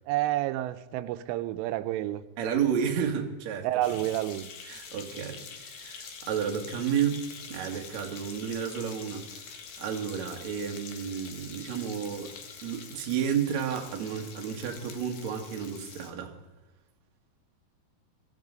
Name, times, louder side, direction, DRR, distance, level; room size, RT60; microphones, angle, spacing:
voice 1, 0.1-2.2 3.6-4.5, right 14 dB, 90° right, 3.2 m, -29 dB
voice 2, 2.4-3.7 4.6-12.4 12.6-16.3, right 8 dB, 55° right, 2.1 m, -31 dB
sound 1, 3.8-16.1, left 6 dB, 60° left, 2.8 m, -45 dB
23.0 x 14.5 x 4.0 m
omnidirectional pair, 5.6 m